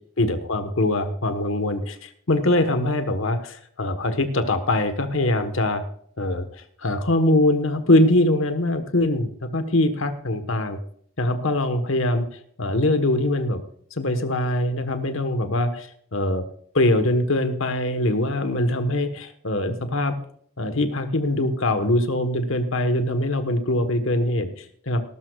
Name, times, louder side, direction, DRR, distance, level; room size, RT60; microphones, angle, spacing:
voice 1, 0.2-5.8 6.2-6.5 6.8-10.8 11.2-12.3 12.6-13.6 13.9-16.4 16.7-20.2 20.6-25.0, left 1 dB, 65° left, 9 dB, 1.3 m, -22 dB
18.5 x 12.5 x 2.4 m, 0.63 s
head